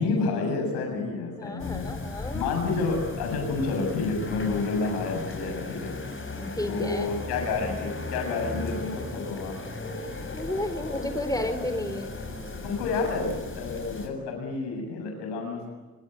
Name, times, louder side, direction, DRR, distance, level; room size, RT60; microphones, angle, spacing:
voice 1, 0.0-1.9 2.3-5.9 6.6-9.6 12.6-15.7, left 4 dB, 80° left, 3 dB, 7.3 m, -29 dB
voice 2, 1.4-2.6 6.4-7.1 10.3-12.2, left 1 dB, 10° left, 8 dB, 4.2 m, -32 dB
sound 1, 1.6-14.1, left 2 dB, 30° left, 7.4 m, -36 dB
25.5 x 25.5 x 9.2 m, 1.2 s
hypercardioid pair, 50°, 40 cm